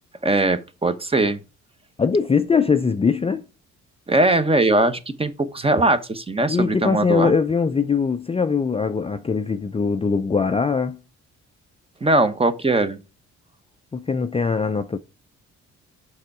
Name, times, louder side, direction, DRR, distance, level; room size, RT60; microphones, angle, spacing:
voice 1, 0.2-1.4 4.1-7.3 12.0-13.0, right 2 dB, 20° right, 1.0 m, -20 dB
voice 2, 2.0-3.4 6.5-11.0 13.9-15.0, left 5 dB, 20° left, 0.5 m, -21 dB
6.6 x 5.6 x 4.8 m
cardioid pair, 90°, 30 cm